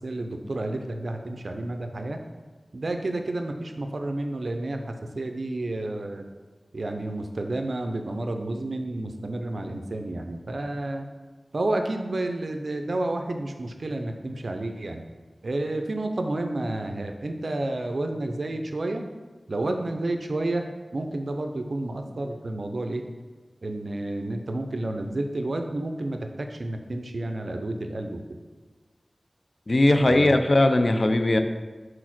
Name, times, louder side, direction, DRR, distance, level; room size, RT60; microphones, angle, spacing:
voice 1, 0.0-2.2 2.7-6.3 6.7-11.1 11.5-15.0 15.4-19.0 19.5-20.7 20.9-23.0 23.6-28.2 30.1-30.3, right 2 dB, 70° right, 5 dB, 0.6 m, -30 dB
voice 2, 29.7-31.4, left 1 dB, 50° left, 7 dB, 0.5 m, -19 dB
4.9 x 4.1 x 5.9 m, 1.3 s
wide cardioid pair, 55°, 0 cm